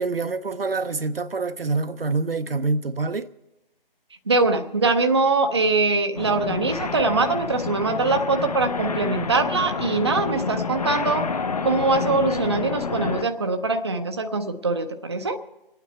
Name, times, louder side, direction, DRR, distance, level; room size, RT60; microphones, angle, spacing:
voice 1, 0.0-3.3, right 3 dB, 75° right, 0.7 m, -26 dB
voice 2, 4.3-11.3 11.6-15.4, right 3 dB, 30° right, 0.6 m, -22 dB
sound 1, 6.2-13.3, left 4 dB, 40° left, 0.7 m, -29 dB
26.0 x 9.2 x 4.5 m
figure-of-eight pair, 150°, 29 cm